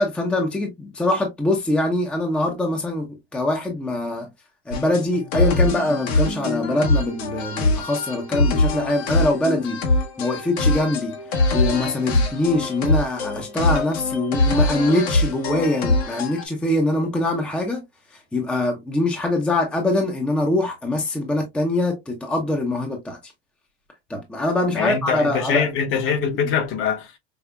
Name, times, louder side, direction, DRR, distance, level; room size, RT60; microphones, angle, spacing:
voice 1, 0.0-4.3 4.7-9.8 10.2-17.8 18.1-23.3 24.1-25.6, left 1 dB, 5° left, 0.6 m, -23 dB
sound 1, 4.7-16.4, left 2 dB, 70° left, 1.2 m, -23 dB
voice 2, 24.7-27.2, left 6 dB, 40° left, 0.9 m, -23 dB
5.1 x 2.0 x 2.2 m
supercardioid pair, 130°, 33 cm